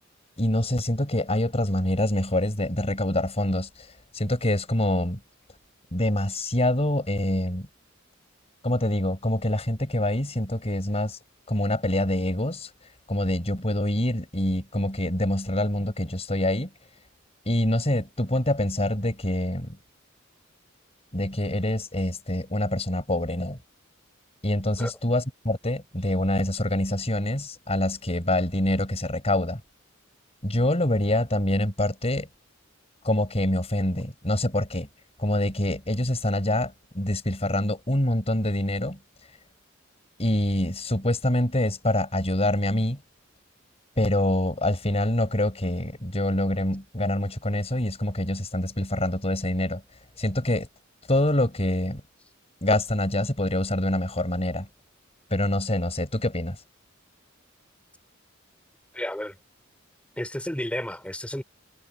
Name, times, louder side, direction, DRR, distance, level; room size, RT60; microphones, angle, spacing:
voice 1, 0.4-5.2 5.9-7.7 8.6-11.2 11.5-12.7 13.1-16.7 17.4-19.8 21.1-23.6 24.4-29.6 30.4-32.3 33.0-34.9 35.2-39.0 40.2-43.0 44.0-49.8 50.2-50.7 51.1-52.0 52.6-54.7 55.3-56.6, left 1 dB, 30° left, 4.7 m, -25 dB
voice 2, 58.9-59.4 60.2-61.4, left 1 dB, 5° left, 3.2 m, -32 dB
head